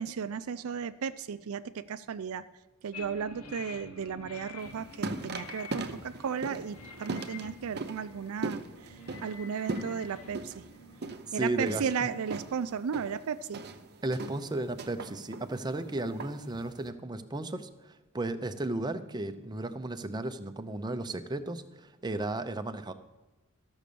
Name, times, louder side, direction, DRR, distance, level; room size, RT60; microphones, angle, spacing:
voice 1, 0.0-2.4 2.8-10.7 11.3-13.7, right 7 dB, 65° right, 13 dB, 0.4 m, -35 dB
sound 1, 2.9-12.8, left 4 dB, 85° left, 1.5 m, -49 dB
sound 2, 4.6-16.9, right 2 dB, 50° right, 0.8 m, -40 dB
voice 2, 11.3-12.1 14.0-22.9, right 2 dB, 20° right, 8 dB, 0.6 m, -34 dB
13.0 x 6.2 x 6.8 m, 1.1 s
head